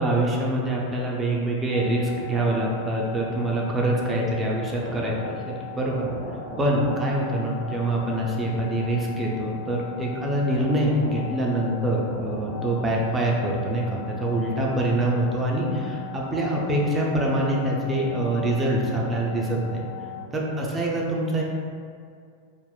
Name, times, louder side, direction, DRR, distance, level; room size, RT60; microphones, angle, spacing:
voice 1, 0.0-6.1 6.6-19.8 20.3-21.4, right 1 dB, 15° right, -3 dB, 0.4 m, -25 dB
sound 1, 1.7-20.3, left 6 dB, 50° left, 0.9 m, -38 dB
3.4 x 2.0 x 2.3 m, 2.2 s
figure-of-eight pair, 90°, 0 cm